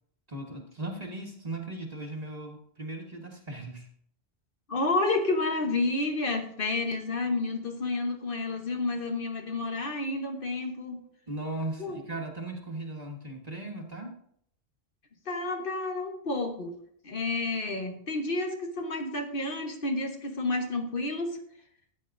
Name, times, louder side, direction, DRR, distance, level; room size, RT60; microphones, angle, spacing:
voice 1, 0.3-3.9 11.3-14.2, right 2 dB, 35° right, 1 dB, 1.5 m, -37 dB
voice 2, 4.7-11.0 11.8-12.0 15.3-16.7 17.0-21.4, left 2 dB, 55° left, 3 dB, 1.3 m, -30 dB
13.5 x 8.8 x 2.6 m, 0.66 s
omnidirectional pair, 1.1 m